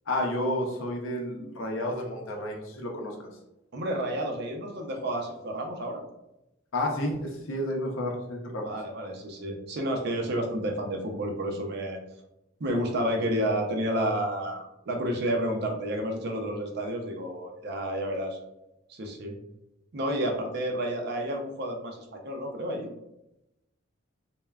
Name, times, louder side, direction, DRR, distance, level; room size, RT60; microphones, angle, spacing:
voice 1, 0.1-3.2 6.7-8.7, left 1 dB, 75° left, 1 dB, 0.6 m, -31 dB
voice 2, 3.7-6.0 8.6-12.0 12.6-18.4 18.9-19.4 19.9-22.9, right 1 dB, 50° right, 2 dB, 0.4 m, -30 dB
3.3 x 2.1 x 2.2 m, 0.89 s
head